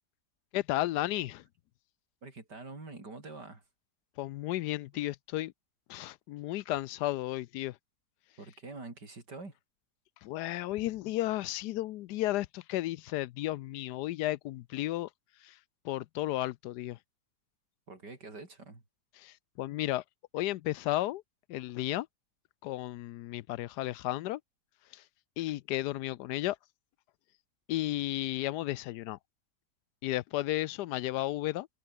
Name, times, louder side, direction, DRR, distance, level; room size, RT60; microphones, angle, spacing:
voice 1, 0.5-1.4 4.2-5.5 5.9-7.8 10.2-15.1 15.4-15.6 15.8-17.0 19.2-20.0 20.3-21.2 21.5-22.1 22.6-24.4 24.9-25.0 25.4-26.6 27.7-29.2 30.0-31.7, left 16 dB, 80° left, 1.1 m, -33 dB
voice 2, 2.2-3.6 4.9-5.0 8.4-9.5 17.9-18.8, right 3 dB, 85° right, 5.6 m, -46 dB
omnidirectional pair, 1.8 m